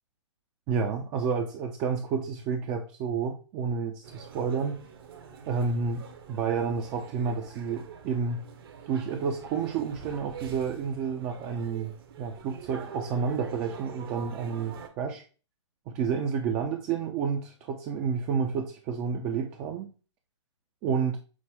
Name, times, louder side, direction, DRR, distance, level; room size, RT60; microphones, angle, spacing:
voice 1, 0.7-4.8 5.5-6.0 6.3-8.4 8.9-15.2 15.9-19.9 20.8-21.2, right 6 dB, 20° right, 3 dB, 0.4 m, -30 dB
sound 1, 4.0-14.9, right 7 dB, 50° right, 0.7 m, -45 dB
6.1 x 2.1 x 3.4 m, 0.35 s
figure-of-eight pair, 130°, 16 cm